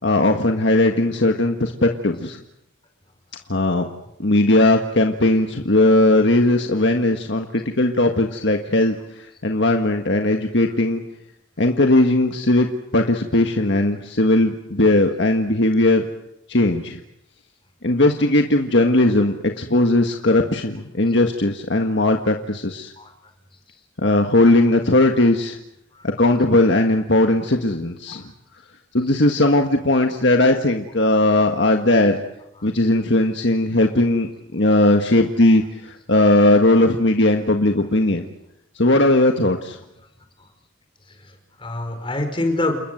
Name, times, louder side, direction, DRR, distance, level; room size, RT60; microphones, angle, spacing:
voice 1, 0.0-2.4 3.5-3.9 4.2-11.0 11.6-12.7 12.9-16.0 16.5-17.0 17.8-22.9 24.0-25.6 26.0-28.2 28.9-32.2 32.6-38.3 38.7-39.8, left 2 dB, 60° left, 4 dB, 1.7 m, -18 dB
voice 2, 26.0-26.3 29.0-29.1 41.1-42.8, left 2 dB, 25° left, 6 dB, 4.9 m, -27 dB
29.5 x 21.0 x 8.0 m, 0.81 s
head